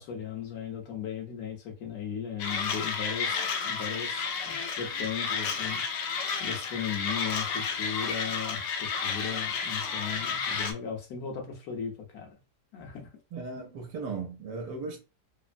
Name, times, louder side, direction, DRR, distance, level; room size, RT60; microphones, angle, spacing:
voice 1, 0.0-12.3 12.7-13.1, left 8 dB, 65° left, 1.3 m, -37 dB
Mechanisms, 2.4-10.7, left 5 dB, 85° left, 1.3 m, -31 dB
voice 2, 13.3-15.0, right 4 dB, 85° right, 1.3 m, -37 dB
3.4 x 2.0 x 2.5 m
omnidirectional pair, 1.8 m